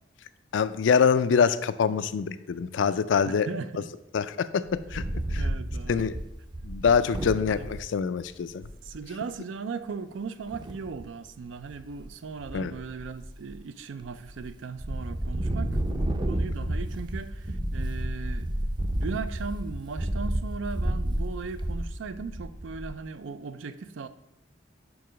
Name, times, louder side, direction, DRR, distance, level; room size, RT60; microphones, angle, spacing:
voice 1, 0.5-3.5 4.1-5.0 5.3-5.5 5.9-6.2 6.6-8.7 12.5-12.7, left 6 dB, 70° left, 14 dB, 0.4 m, -25 dB
voice 2, 3.2-3.9 5.3-6.1 7.6-7.7 8.8-18.5 18.9-24.1, right 5 dB, 80° right, 13 dB, 0.4 m, -38 dB
Wind, 4.7-7.8 8.3-8.4 8.6-9.0 10.5-11.1 11.6-12.1 12.4-13.6 14.0-14.5 14.8-23.0, right 1 dB, 25° right, 0.5 m, -31 dB
5.5 x 4.7 x 5.0 m, 0.88 s
head